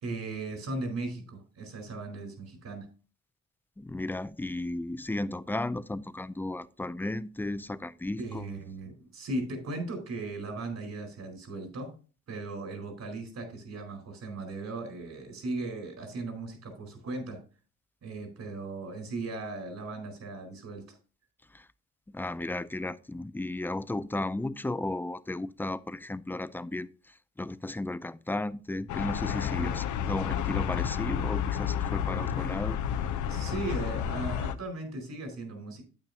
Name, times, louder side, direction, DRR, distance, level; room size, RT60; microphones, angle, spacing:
voice 1, 0.0-2.9 8.2-11.9 12.3-17.4 18.0-20.8 29.6-29.8 33.3-35.8, right 2 dB, 60° right, 4.4 m, -37 dB
voice 2, 3.8-8.5 21.5-21.7 22.1-32.8, left 2 dB, 5° left, 0.4 m, -34 dB
sound 1, 28.9-34.5, left 9 dB, 75° left, 0.7 m, -31 dB
9.0 x 9.0 x 2.8 m
cardioid pair, 90°, 30 cm